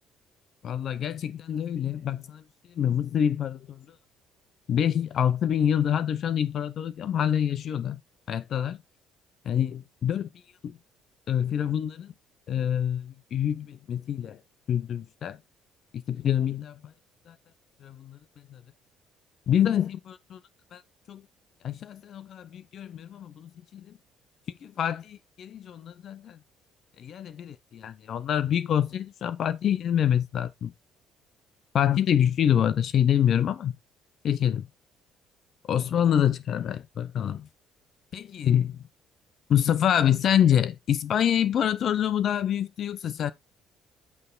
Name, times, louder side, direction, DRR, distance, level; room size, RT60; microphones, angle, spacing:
voice 1, 0.6-2.4 2.7-3.9 4.7-8.0 8.3-8.8 9.4-10.3 10.6-10.8 11.3-12.1 12.5-14.4 14.7-15.4 15.9-16.9 17.3-17.4 17.8-18.2 18.5-18.6 19.5-20.4 20.7-20.8 21.1-21.3 21.6-24.0 24.6-26.4 27.0-30.7 31.7-33.7 34.2-34.7 35.6-37.5 38.1-38.8 39.5-43.3, left 9 dB, 60° left, 0.7 m, -26 dB
8.3 x 3.4 x 3.9 m
supercardioid pair, 75°, 0 cm